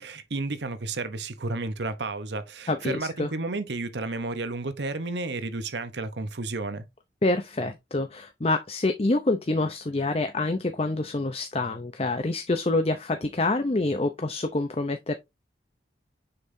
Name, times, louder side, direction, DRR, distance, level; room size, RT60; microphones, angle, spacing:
voice 1, 0.0-6.9, right 3 dB, 75° right, 0.9 m, -32 dB
voice 2, 2.7-3.3 7.2-15.2, left 2 dB, 35° left, 0.6 m, -26 dB
6.7 x 5.6 x 2.7 m
head